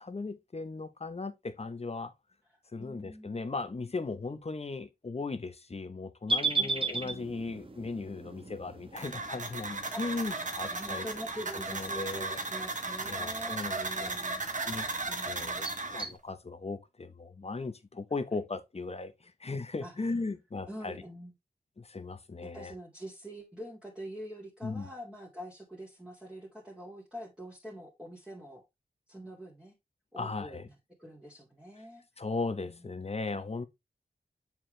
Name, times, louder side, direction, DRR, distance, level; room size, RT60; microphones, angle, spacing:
voice 1, 0.0-2.1 2.7-11.0 11.7-12.4 13.1-14.1 14.7-14.9 15.3-21.0 21.8-22.7 24.6-24.9 30.2-30.6 32.2-33.7, left 3 dB, 40° left, 1.0 m, -37 dB
voice 2, 2.8-3.4 6.6-6.7 7.0-7.3 9.9-10.4 10.7-14.4 15.0-15.8 19.8-19.9 20.7-21.3 22.4-28.6 29.1-29.7 30.1-30.6 31.0-32.0 32.6-32.9, equal, 5° right, 2.2 m, -45 dB
sound 1, 6.3-16.2, right 3 dB, 35° right, 1.3 m, -38 dB
sound 2, 9.0-16.0, right 3 dB, 50° right, 1.5 m, -36 dB
7.2 x 4.6 x 3.3 m
wide cardioid pair, 65°, 16 cm